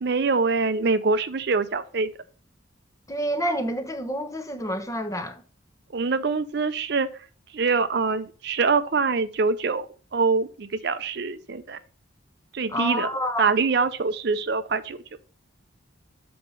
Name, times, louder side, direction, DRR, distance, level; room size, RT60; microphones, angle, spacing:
voice 1, 0.0-2.1 5.9-7.1 7.5-9.9 10.1-11.8 12.5-13.1 13.4-15.0, right 4 dB, 55° right, 0.5 m, -24 dB
voice 2, 3.1-5.4 12.7-13.5, equal, 15° left, 0.8 m, -28 dB
7.3 x 4.2 x 5.4 m
head